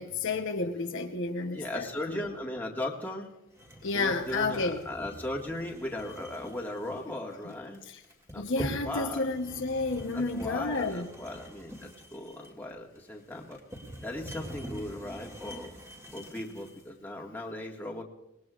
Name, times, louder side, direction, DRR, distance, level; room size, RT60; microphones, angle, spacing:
voice 1, 0.0-2.2 3.8-4.8 7.4-7.5 7.9-8.0 8.4-11.1, left 3 dB, 60° left, 1.0 m, -31 dB
voice 2, 1.5-3.3 3.9-7.8 8.3-9.2 10.1-13.6 14.0-15.7 16.1-18.0, left 1 dB, 10° left, 1.9 m, -37 dB
sound 1, 3.6-16.9, equal, 15° right, 2.6 m, -44 dB
26.5 x 20.0 x 2.5 m
head